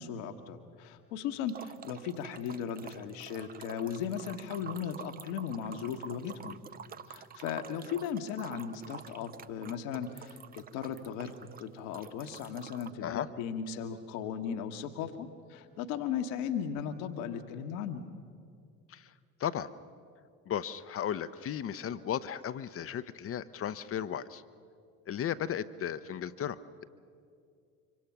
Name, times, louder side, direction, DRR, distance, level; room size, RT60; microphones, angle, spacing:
voice 1, 0.0-6.6 7.1-18.0, left 8 dB, 60° left, 7 dB, 1.3 m, -37 dB
sound 1, 1.5-12.9, right 7 dB, 20° right, 0.5 m, -48 dB
voice 2, 20.5-24.4 25.1-26.8, left 9 dB, 30° left, 13 dB, 0.7 m, -35 dB
25.0 x 24.0 x 6.0 m, 2.4 s
figure-of-eight pair, 60°, 46 cm